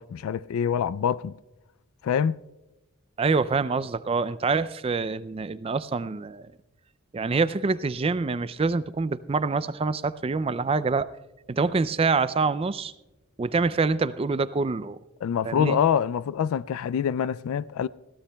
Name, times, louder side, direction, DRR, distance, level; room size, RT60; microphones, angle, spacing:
voice 1, 0.0-1.4 2.0-2.4 15.2-17.9, left 8 dB, 80° left, 0.3 m, -25 dB
voice 2, 3.2-6.5 7.1-11.1 11.5-12.9 13.4-15.0 15.4-15.8, right 4 dB, 25° right, 0.3 m, -26 dB
21.0 x 16.0 x 2.2 m
head